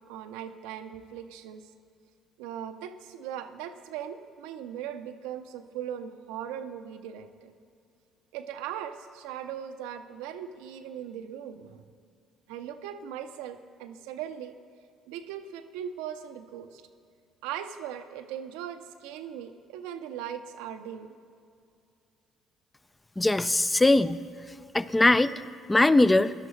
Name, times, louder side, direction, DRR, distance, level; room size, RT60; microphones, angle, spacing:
voice 1, 0.1-1.7 2.4-7.5 8.3-11.8 12.5-14.5 15.1-16.8 17.4-21.1, right 9 dB, 85° right, 8 dB, 0.6 m, -39 dB
voice 2, 23.2-24.2 24.7-25.4 25.7-26.3, left 2 dB, 15° left, 15 dB, 0.4 m, -21 dB
17.0 x 11.5 x 3.2 m, 2.4 s
supercardioid pair, 65°, 0 cm